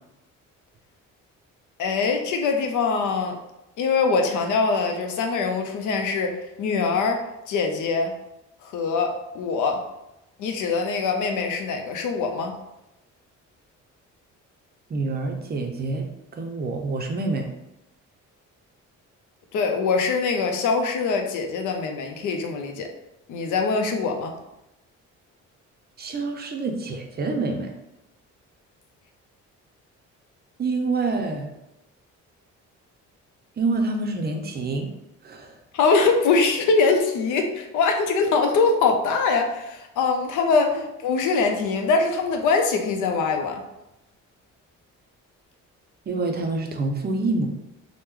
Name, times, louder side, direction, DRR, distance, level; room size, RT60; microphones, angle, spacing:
voice 1, 1.8-3.4 3.8-7.2 7.5-8.1 8.6-9.8 10.4-12.5 19.5-22.9 23.3-24.3 35.7-43.6, left 4 dB, 80° left, 4 dB, 0.6 m, -23 dB
voice 2, 14.9-17.5 26.0-27.7 30.6-31.5 33.6-34.9 35.2-35.5 40.7-40.8 46.1-47.5, right 3 dB, 35° right, 3 dB, 0.5 m, -27 dB
3.0 x 2.1 x 3.5 m, 0.90 s
cardioid pair, 90°, 30 cm